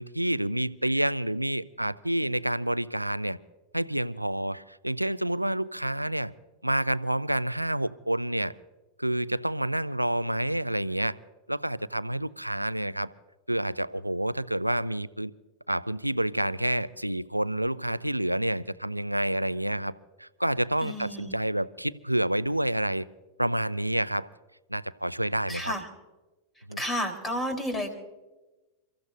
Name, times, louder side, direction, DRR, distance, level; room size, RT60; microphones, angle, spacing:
voice 1, 0.0-3.4 3.7-6.3 6.6-8.5 9.0-11.1 11.5-13.1 13.5-15.3 15.7-19.9 20.2-23.1 23.4-24.3 24.7-25.7 26.7-26.8, right 1 dB, 85° right, 19 dB, 0.4 m, -28 dB
voice 2, 20.8-21.4 25.5-25.9 26.8-27.9, equal, 15° left, 6 dB, 3.7 m, -31 dB
30.0 x 14.5 x 2.6 m, 1.1 s
figure-of-eight pair, 90°, 0 cm